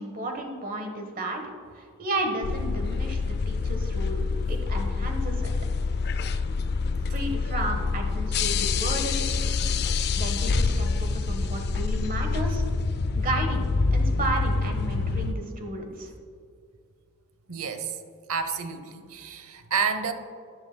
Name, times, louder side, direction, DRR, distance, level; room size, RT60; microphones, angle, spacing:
voice 1, 0.0-1.4 1.7-5.5 7.1-9.4 10.2-12.6 13.1-16.1, right 1 dB, 40° right, 3 dB, 1.2 m, -33 dB
sound 1, 2.4-15.3, left 4 dB, 50° left, 0.4 m, -26 dB
voice 2, 17.5-18.0 18.3-20.1, right 6 dB, 65° right, 9 dB, 0.7 m, -30 dB
10.5 x 10.0 x 2.2 m, 2.3 s
head